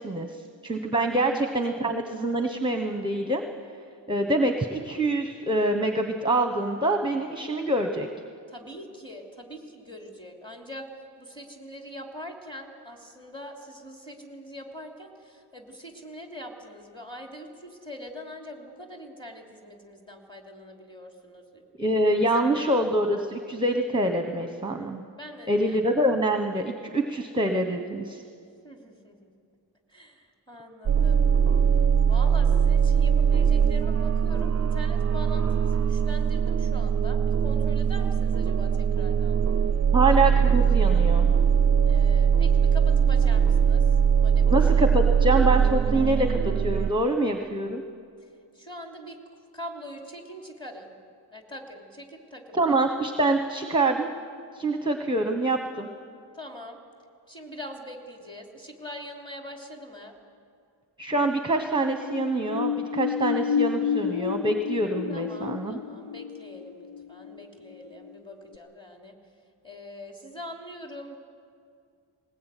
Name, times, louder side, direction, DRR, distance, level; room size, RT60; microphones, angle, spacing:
voice 1, 0.0-3.4 4.1-8.1 21.8-25.0 25.5-28.2 39.9-41.3 44.5-47.8 52.5-54.1 54.5-55.9 61.0-65.8, right 1 dB, 10° right, 5 dB, 1.2 m, -25 dB
voice 2, 8.5-10.9 11.2-21.6 22.4-22.5 25.2-25.8 28.6-29.3 29.9-31.3 32.1-39.4 41.9-43.9 44.2-44.9 48.5-49.2 49.5-50.9 51.3-52.7 56.3-56.8 57.3-60.1 65.1-69.2 69.6-71.2, left 1 dB, 10° left, 1 dB, 3.2 m, -43 dB
sound 1, 30.9-46.9, right 7 dB, 35° right, 0.5 m, -21 dB
sound 2, 61.8-68.2 68.5-68.6, left 7 dB, 80° left, 0.7 m, -30 dB
20.0 x 20.0 x 9.2 m, 2.3 s
wide cardioid pair, 110°, 46 cm